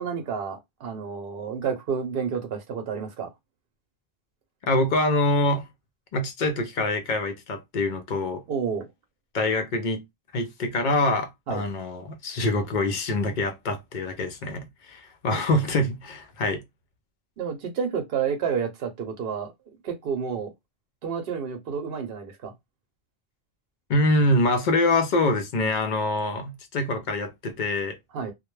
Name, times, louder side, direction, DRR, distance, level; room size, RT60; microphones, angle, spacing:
voice 1, 0.0-3.3 8.5-8.9 11.5-11.6 15.3-15.4 17.4-19.5 19.8-20.5 21.0-22.5 28.1-28.3, right 6 dB, 65° right, 0.8 m, -30 dB
voice 2, 4.7-5.7 6.1-8.4 9.3-10.0 10.3-16.6 23.9-28.0, left 2 dB, 55° left, 0.6 m, -25 dB
2.1 x 2.1 x 3.0 m
omnidirectional pair, 1.1 m